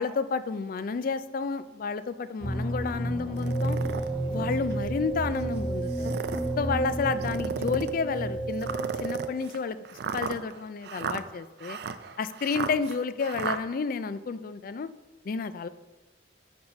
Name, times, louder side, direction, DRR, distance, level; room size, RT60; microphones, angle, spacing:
voice 1, 0.0-3.8 4.3-6.1 6.6-9.8 10.1-11.8 12.2-14.9 15.3-15.7, left 5 dB, 50° left, 13 dB, 0.3 m, -31 dB
sound 1, 2.4-9.0, equal, 15° left, 1.5 m, -32 dB
sound 2, 3.3-9.3, right 6 dB, 75° left, 1.2 m, -35 dB
sound 3, 3.4-4.1 4.7-4.8 5.8-6.5 7.2-8.0 8.6-13.6, right 5 dB, 60° right, 0.4 m, -35 dB
5.4 x 4.9 x 5.2 m, 1.1 s
head